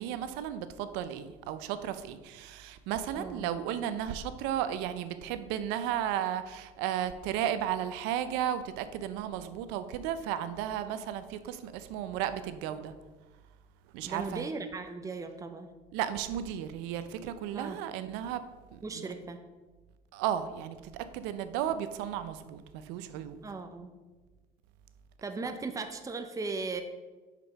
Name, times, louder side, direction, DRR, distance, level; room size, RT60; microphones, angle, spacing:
voice 1, 0.0-12.9 13.9-14.5 15.9-18.4 18.7-19.1 20.1-23.4, right 10 dB, 80° right, 12 dB, 0.6 m, -34 dB
voice 2, 3.1-3.5 14.0-15.7 17.5-17.8 18.8-19.4 23.4-23.9 25.2-26.8, right 4 dB, 20° right, 7 dB, 0.7 m, -37 dB
5.1 x 5.0 x 5.6 m, 1.2 s
supercardioid pair, 85°, 18 cm